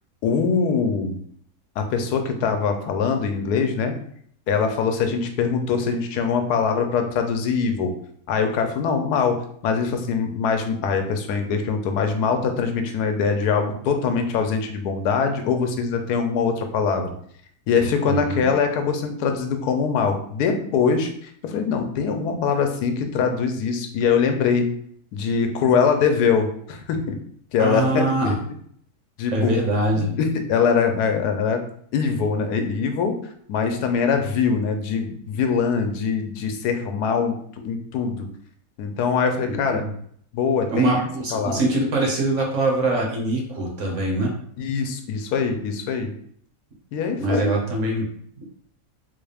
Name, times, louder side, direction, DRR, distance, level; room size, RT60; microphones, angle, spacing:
voice 1, 0.2-1.2 1.8-4.0 4.5-7.9 8.3-17.1 17.7-24.7 25.1-27.2 27.5-28.3 29.2-29.5 30.0-31.6 31.9-37.4 37.6-38.3 38.8-39.8 40.3-41.0 41.3-41.6 44.6-46.1 46.9-47.5, left 5 dB, 90° left, 6 dB, 1.2 m, -23 dB
voice 2, 18.1-18.5 27.6-28.3 29.3-30.1 39.5-39.9 40.7-44.3 47.2-48.0, right 2 dB, 55° right, 0 dB, 1.1 m, -23 dB
4.0 x 2.3 x 3.3 m, 0.62 s
omnidirectional pair, 1.6 m